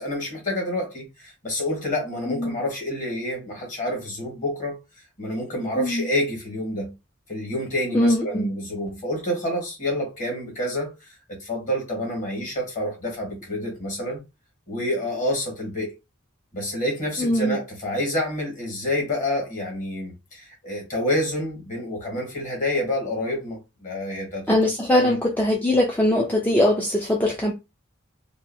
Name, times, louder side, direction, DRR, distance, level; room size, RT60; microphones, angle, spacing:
voice 1, 0.0-4.8 5.2-6.9 7.3-10.9 11.3-14.2 14.7-15.9 16.5-24.5 24.9-25.2, left 1 dB, 40° left, 1.4 m, -28 dB
voice 2, 5.8-6.1 7.9-8.5 17.2-17.6 24.5-27.5, left 1 dB, 10° left, 0.4 m, -21 dB
2.7 x 2.4 x 2.6 m
head